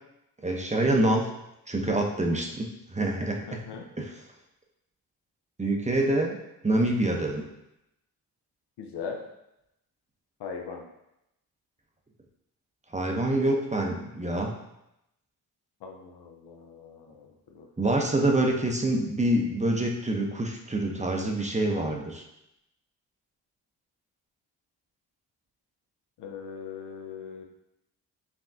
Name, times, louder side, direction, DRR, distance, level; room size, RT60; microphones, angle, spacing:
voice 1, 0.4-1.3 1.7-3.6 4.0-4.1 5.6-6.4 6.6-7.5 12.9-14.5 17.8-22.2, right 1 dB, 15° right, 1 dB, 0.6 m, -26 dB
voice 2, 3.5-3.9 8.8-9.2 10.4-10.8 15.8-18.0 26.2-27.4, left 6 dB, 75° left, 2 dB, 0.7 m, -40 dB
5.8 x 2.3 x 2.6 m, 0.84 s
cardioid pair, 55°, 41 cm